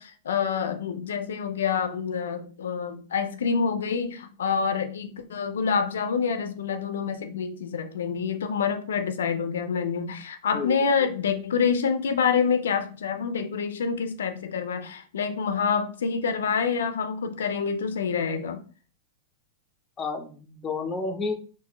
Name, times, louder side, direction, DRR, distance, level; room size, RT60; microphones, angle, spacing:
voice 1, 0.0-18.6, left 6 dB, 90° left, 0.4 m, -27 dB
voice 2, 10.5-10.9 20.0-21.3, left 4 dB, 20° left, 0.6 m, -31 dB
3.7 x 2.6 x 2.9 m
hypercardioid pair, 130°, 0 cm